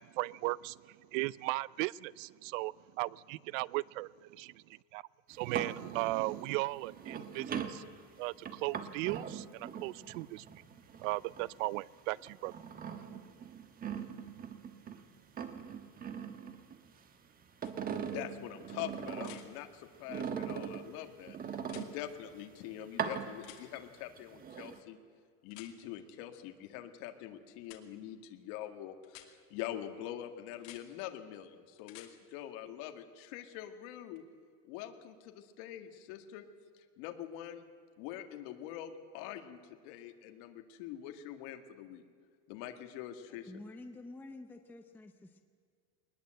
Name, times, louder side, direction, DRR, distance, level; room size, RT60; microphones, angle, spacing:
voice 1, 0.0-5.0 5.3-7.8 8.2-10.4 11.0-12.5, right 21 dB, 75° right, 22 dB, 0.6 m, -37 dB
sound 1, 5.3-11.7 12.1-15.0 15.3-17.1 17.4-19.5 20.1-22.3 22.8-23.8 24.2-24.8, right 7 dB, 20° right, 1.2 m, -41 dB
sound 2, 17.6-17.7 19.2-19.5 21.6-21.9 23.4-23.6 25.5-25.7 27.6-27.8 29.0-29.3 30.5-30.8 31.8-32.1 34.2-34.3, left 14 dB, 80° left, 2.6 m, -52 dB
voice 2, 18.1-25.0 25.4-34.2 34.7-36.4 36.7-37.6 38.0-42.0 42.5-43.5, left 11 dB, 60° left, 6 dB, 2.0 m, -44 dB
voice 3, 43.3-45.4, left 2 dB, 5° left, 6 dB, 0.7 m, -49 dB
21.5 x 20.0 x 7.8 m, 2.1 s
cardioid pair, 160°, 39 cm